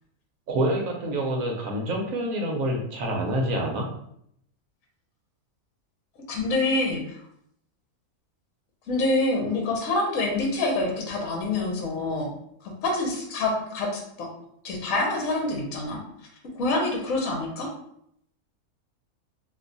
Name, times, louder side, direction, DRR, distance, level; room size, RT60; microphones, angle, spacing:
voice 1, 0.5-3.8, right 1 dB, 70° right, 1 dB, 1.1 m, -27 dB
voice 2, 6.3-7.2 8.9-12.3 12.8-14.3 14.6-16.0 16.5-17.7, left 2 dB, 70° left, 0 dB, 1.1 m, -26 dB
2.8 x 2.3 x 3.8 m, 0.72 s
omnidirectional pair, 1.5 m